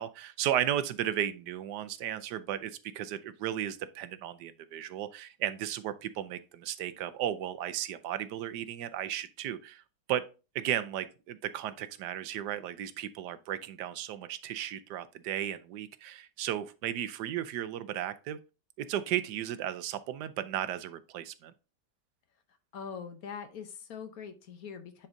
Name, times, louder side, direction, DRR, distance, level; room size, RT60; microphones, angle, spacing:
voice 1, 0.0-9.8 10.1-10.2 10.5-18.4 18.8-21.5, right 11 dB, 75° right, 1.2 m, -34 dB
voice 2, 22.7-25.1, left 6 dB, 60° left, 1.1 m, -42 dB
9.7 x 4.4 x 2.6 m
omnidirectional pair, 1.9 m